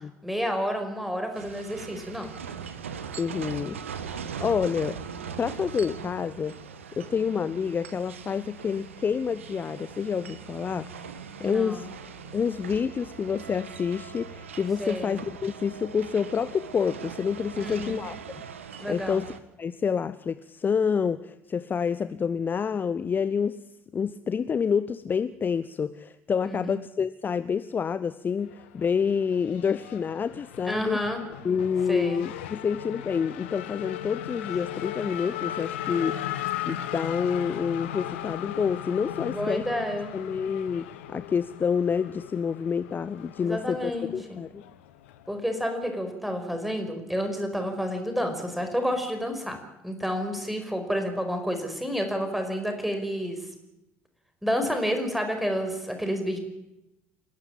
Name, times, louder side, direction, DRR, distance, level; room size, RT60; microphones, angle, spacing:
voice 1, 0.2-2.3 11.4-11.8 14.8-15.2 17.5-18.0 18.8-19.3 26.4-26.8 30.6-31.2 31.9-32.2 39.2-40.1 43.4-44.4 45.3-49.6 49.8-53.4 54.4-56.4, equal, ahead, 5 dB, 5.3 m, -30 dB
sound 1, 1.3-19.4, right 7 dB, 75° right, 1.3 m, -41 dB
voice 2, 3.2-5.0 5.4-6.6 7.0-10.9 11.4-11.9 12.3-19.2 19.6-23.6 23.9-31.0 31.4-36.3 36.6-39.6 40.1-44.6, left 6 dB, 30° left, 15 dB, 0.8 m, -28 dB
Race car auto racing / Accelerating revving vroom, 28.4-45.4, left 12 dB, 65° left, 1.4 m, -37 dB
28.5 x 12.0 x 8.9 m, 0.93 s
figure-of-eight pair, 60°, 7 cm